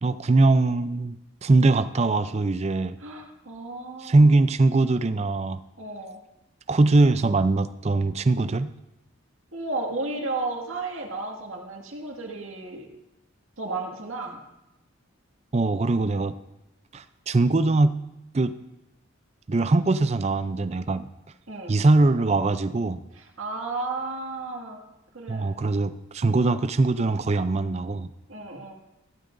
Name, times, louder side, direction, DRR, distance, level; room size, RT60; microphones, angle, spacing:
voice 1, 0.0-1.2 1.4-3.0 4.0-5.6 6.7-8.7 15.5-16.3 16.9-17.9 18.3-18.5 19.5-21.1 21.7-23.0 25.3-28.1, right 2 dB, 30° right, 12 dB, 0.4 m, -21 dB
voice 2, 3.0-4.4 5.8-6.2 9.5-12.9 13.6-14.4 21.5-21.8 23.1-24.8 25.1-25.5 28.3-28.7, right 3 dB, 85° right, 1 dB, 2.0 m, -33 dB
15.0 x 12.5 x 2.6 m, 0.93 s
head